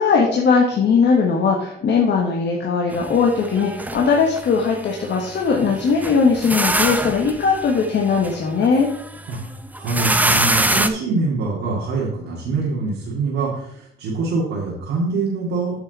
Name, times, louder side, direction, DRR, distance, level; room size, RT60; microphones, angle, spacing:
voice 1, 0.0-8.9, left 5 dB, 60° left, 0 dB, 1.3 m, -19 dB
sound 1, 2.9-10.9, right 1 dB, 10° right, 0.6 m, -25 dB
voice 2, 9.8-15.8, right 3 dB, 80° right, -5 dB, 2.1 m, -24 dB
8.8 x 6.0 x 4.1 m, 0.75 s
cardioid pair, 90°, 20 cm